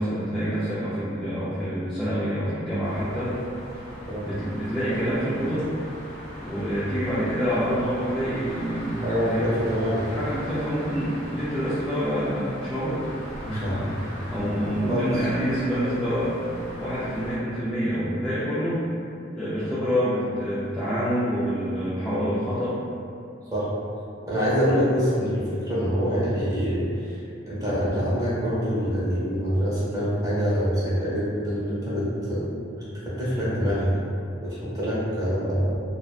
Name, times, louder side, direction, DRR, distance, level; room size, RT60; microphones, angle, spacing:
voice 1, 0.0-3.4 4.2-5.7 6.4-9.4 10.1-13.1 13.5-16.3 16.8-18.8 19.3-22.8, equal, 5° left, -13 dB, 0.3 m, -27 dB
sound 1, 2.8-17.4, equal, 90° left, 0.8 m, -39 dB
voice 2, 9.0-10.0 13.6-13.7 14.9-15.2 23.5-23.6 24.2-27.2 27.5-32.5 32.8-33.9 34.4-35.8, equal, 20° right, -10 dB, 0.8 m, -25 dB
2.5 x 2.2 x 2.3 m, 2.5 s
head